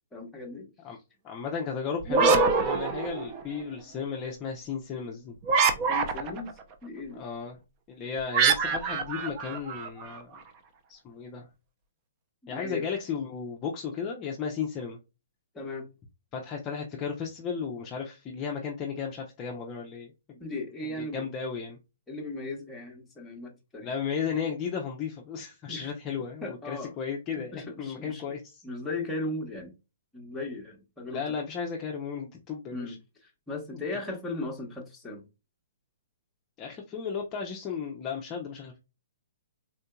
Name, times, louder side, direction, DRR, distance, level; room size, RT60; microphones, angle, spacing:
voice 1, 0.1-0.7 5.9-6.5 6.8-7.2 12.4-12.9 15.5-15.9 20.4-21.3 22.1-23.9 25.7-25.9 26.4-27.0 27.3-28.2 28.6-29.7 30.1-31.3 32.7-35.3, left 2 dB, 5° left, 0.9 m, -37 dB
voice 2, 1.2-5.4 7.1-7.6 7.9-10.3 10.9-11.5 12.5-15.0 16.3-20.4 20.8-21.8 23.8-28.6 31.1-33.0 33.7-33.8 36.6-38.8, left 6 dB, 20° left, 0.5 m, -34 dB
sound 1, 2.0-3.6 5.4-6.5 8.3-10.2, right 5 dB, 30° right, 0.5 m, -25 dB
3.7 x 2.7 x 2.2 m
hypercardioid pair, 150°, 0 cm